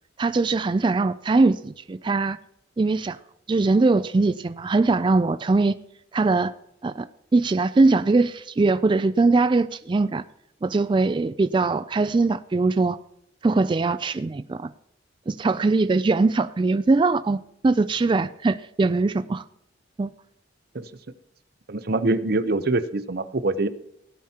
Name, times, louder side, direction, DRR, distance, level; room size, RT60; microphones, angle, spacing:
voice 1, 0.2-2.4 2.8-3.2 3.5-5.7 6.1-6.5 6.8-7.1 7.3-10.2 10.6-13.0 13.4-14.7 15.3-17.4 17.6-19.4 20.0-20.1, right 3 dB, 25° right, 13 dB, 0.3 m, -21 dB
voice 2, 21.7-23.7, right 2 dB, 55° right, 13 dB, 0.7 m, -24 dB
17.5 x 9.3 x 2.9 m, 0.77 s
head